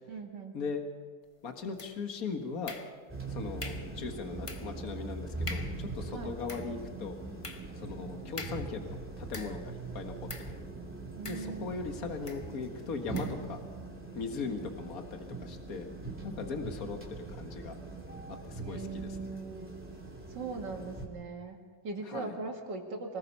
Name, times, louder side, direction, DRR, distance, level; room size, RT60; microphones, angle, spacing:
voice 1, 0.1-0.6 6.1-6.3 11.2-11.9 18.6-19.7 20.3-23.2, right 4 dB, 70° right, 2 dB, 2.7 m, -40 dB
voice 2, 1.4-2.8 3.3-7.2 7.8-10.6 11.3-13.6 14.1-15.9 16.2-17.8 18.3-19.3 22.1-22.4, left 4 dB, 50° left, 5 dB, 2.1 m, -39 dB
sound 1, 1.8-2.2 2.7-3.2 3.6-4.0 4.5-4.8 5.1-5.2 5.5-5.9 6.3-9.8 10.3-10.6 11.2-11.8 12.3-12.5 13.1-13.4, left 3 dB, 25° left, 0.7 m, -45 dB
sound 2, 3.1-21.1, right 3 dB, 5° right, 2.8 m, -41 dB
25.0 x 19.0 x 5.5 m, 1.5 s
omnidirectional pair, 2.0 m